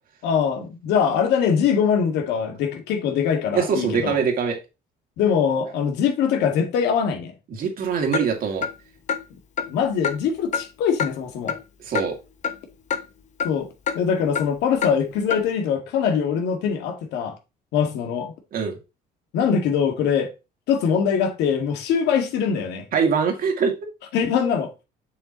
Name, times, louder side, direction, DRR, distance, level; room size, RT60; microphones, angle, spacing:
voice 1, 0.2-4.2 5.2-7.3 9.7-11.6 13.4-13.7 13.9-17.4 17.7-18.3 19.3-20.3 20.7-22.9 24.1-24.7, left 7 dB, 85° left, 1.9 m, -22 dB
voice 2, 3.5-4.6 7.5-8.7 11.8-12.2 18.5-18.8 22.9-23.7, right 6 dB, 60° right, 2.4 m, -23 dB
Clock, 8.1-8.3 8.6-8.7 9.1-9.2 9.6-9.7 10.0-10.2 10.5-10.6 11.0-11.1 11.5-11.6 12.0-12.1 12.4-12.6 12.9-13.0 13.4-13.5 13.9-14.0 14.4-14.5 14.8-14.9 15.3-15.4, left 7 dB, 45° left, 1.0 m, -25 dB
7.1 x 6.9 x 3.0 m
cardioid pair, 110°, 17 cm